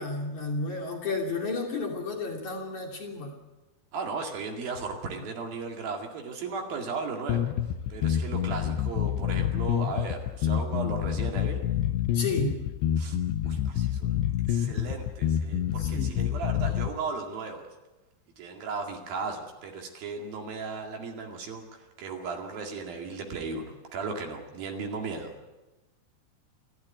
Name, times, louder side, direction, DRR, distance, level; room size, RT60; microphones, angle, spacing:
voice 1, 0.0-3.4 12.1-12.6 15.8-16.1, left 3 dB, 45° left, 1 dB, 3.8 m, -32 dB
voice 2, 3.9-7.5 7.9-11.6 13.0-13.2 13.5-14.2 14.5-17.7 18.4-25.3, right 4 dB, 60° right, 2 dB, 3.9 m, -36 dB
sound 1, 7.3-16.9, left 10 dB, 80° left, 3.1 m, -27 dB
28.0 x 12.5 x 9.5 m, 1.1 s
omnidirectional pair, 4.9 m